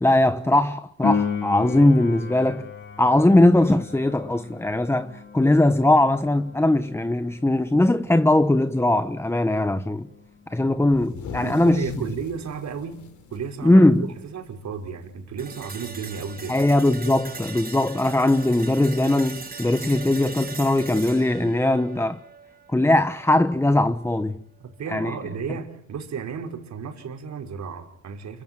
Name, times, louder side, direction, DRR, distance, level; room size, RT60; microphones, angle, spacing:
voice 1, 0.0-2.7 3.0-10.0 10.5-11.9 13.6-14.1 16.5-22.2 22.7-24.4 24.9-25.2, left 1 dB, 10° left, 1.1 m, -20 dB
Piano, 1.0-11.4 19.0-19.1, left 5 dB, 40° left, 3.5 m, -34 dB
sound 1, 10.8-14.5 14.9-15.0 15.4-15.8 17.0-17.1 18.1-18.2, left 6 dB, 70° left, 3.5 m, -40 dB
voice 2, 11.4-16.6 24.8-28.4, right 6 dB, 65° right, 5.3 m, -33 dB
sound 2, 15.4-23.4, right 4 dB, 30° right, 5.6 m, -39 dB
28.5 x 15.5 x 9.2 m
cardioid pair, 90°, 30 cm